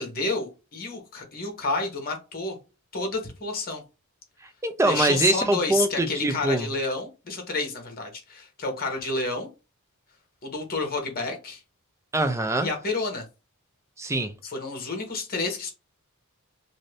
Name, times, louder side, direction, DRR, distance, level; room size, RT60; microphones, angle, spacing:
voice 1, 0.0-2.6 2.9-3.8 4.9-9.5 10.4-11.6 12.6-13.2 14.4-15.7, left 3 dB, 45° left, 1.0 m, -30 dB
voice 2, 4.4-6.7 12.1-12.7 14.0-14.3, right 2 dB, 15° right, 0.4 m, -24 dB
2.7 x 2.6 x 3.2 m
head